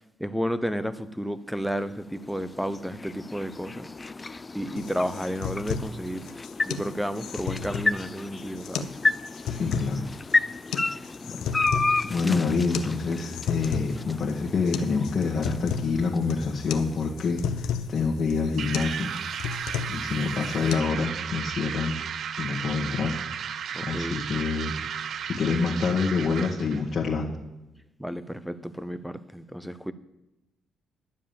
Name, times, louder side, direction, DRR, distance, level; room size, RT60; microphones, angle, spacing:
voice 1, 0.2-3.9 4.5-6.3 6.6-8.9 10.9-11.1 12.2-12.4 23.7-24.2 28.0-29.9, equal, ahead, 0.8 m, -32 dB
sound 1, 1.5-17.7, left 3 dB, 25° left, 0.4 m, -32 dB
sound 2, 4.8-20.8, left 7 dB, 85° left, 0.8 m, -34 dB
voice 2, 9.5-10.0 10.8-10.9 11.3-11.5 12.1-19.1 19.9-22.0 22.4-23.2 23.8-24.7 25.1-27.4, left 4 dB, 45° left, 1.7 m, -27 dB
sound 3, 18.6-26.9, right 8 dB, 65° right, 0.4 m, -34 dB
11.5 x 7.3 x 7.1 m
cardioid pair, 90°, 0 cm